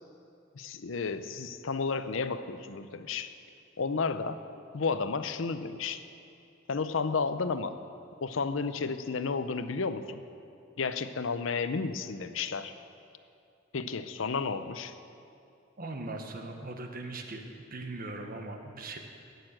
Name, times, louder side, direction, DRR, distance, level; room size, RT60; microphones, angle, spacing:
voice 1, 0.5-3.3 3.8-4.4 4.7-6.0 6.7-7.8 8.2-10.2 10.8-12.7 13.7-14.9, left 4 dB, 75° left, 11 dB, 0.6 m, -32 dB
voice 2, 15.8-17.4 17.7-19.0, right 2 dB, 50° right, 4 dB, 1.3 m, -39 dB
17.5 x 6.8 x 7.7 m, 2.6 s
head